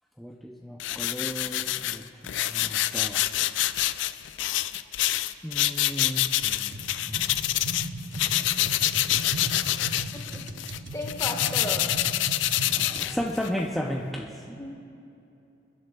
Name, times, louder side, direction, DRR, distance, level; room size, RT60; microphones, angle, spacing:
voice 1, 0.2-2.1 2.3-3.2 5.4-7.3 12.7-14.4, equal, ahead, -2 dB, 0.5 m, -34 dB
sound 1, 0.8-7.9 8.1-13.6, left 14 dB, 80° left, 0.3 m, -27 dB
sound 2, 6.7-13.1, right 2 dB, 75° right, 0.8 m, -37 dB
voice 2, 10.9-12.0 14.6-14.7, left 1 dB, 20° left, 1 dB, 1.4 m, -34 dB
27.5 x 11.0 x 2.3 m, 2.7 s
head